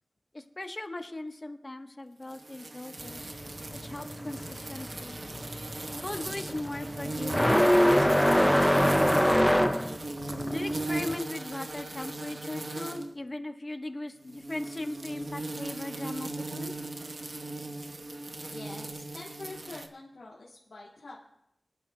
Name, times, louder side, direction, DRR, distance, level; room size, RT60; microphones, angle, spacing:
voice 1, 0.3-3.3 3.7-5.2 6.0-9.9 10.4-16.7, left 2 dB, 35° left, 5 dB, 1.0 m, -39 dB
sound 1, 2.3-13.1 14.2-19.9, right 2 dB, 55° right, 1.0 m, -38 dB
sound 2, 3.0-11.2, equal, ahead, 0.5 m, -25 dB
voice 2, 18.5-21.2, left 2 dB, 90° left, -6 dB, 2.1 m, -46 dB
23.5 x 11.5 x 2.2 m, 0.80 s
wide cardioid pair, 90°, 0 cm